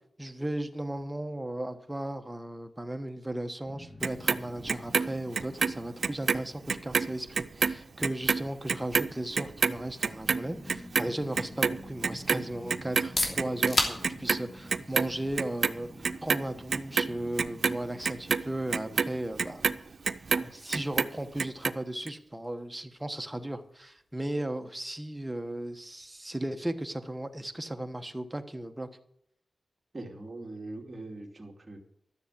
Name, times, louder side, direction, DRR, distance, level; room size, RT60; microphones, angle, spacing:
voice 1, 0.2-15.9 16.2-19.6 20.3-28.9, right 1 dB, 10° right, 7 dB, 1.2 m, -36 dB
sound 1, 3.6-20.8, left 1 dB, 10° left, 1.9 m, -50 dB
Clock, 4.0-6.4 6.7-13.1 13.4-14.4 14.7-15.7 16.0-20.5 20.7-21.7 22.1-22.2, right 5 dB, 70° right, 0.6 m, -28 dB
sound 2, 12.9-28.5, left 2 dB, 50° left, 3.1 m, -40 dB
voice 2, 29.9-31.8, right 2 dB, 35° right, 2 dB, 2.6 m, -42 dB
13.0 x 7.1 x 8.3 m, 0.74 s
wide cardioid pair, 100°, 0 cm